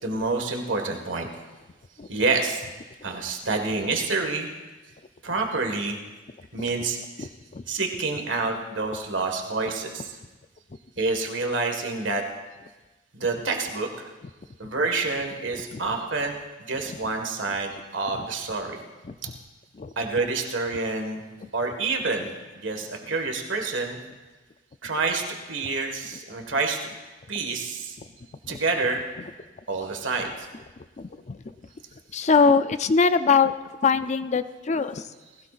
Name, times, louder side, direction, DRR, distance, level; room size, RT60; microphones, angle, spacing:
voice 1, 0.0-1.3 2.1-2.6 3.0-4.5 5.2-6.0 6.5-7.3 7.7-10.2 11.0-12.2 13.1-14.1 14.6-18.8 19.9-21.2 21.5-24.0 24.8-26.8 27.3-28.0 28.5-29.0 29.7-30.5, right 3 dB, 75° right, 3 dB, 1.7 m, -28 dB
voice 2, 7.2-7.6 15.7-15.8 19.0-19.1 19.7-19.9 28.4-28.6 31.0-31.4 32.1-33.5 33.8-35.0, left 5 dB, 35° left, 11 dB, 0.5 m, -22 dB
19.5 x 16.5 x 2.5 m, 1.2 s
head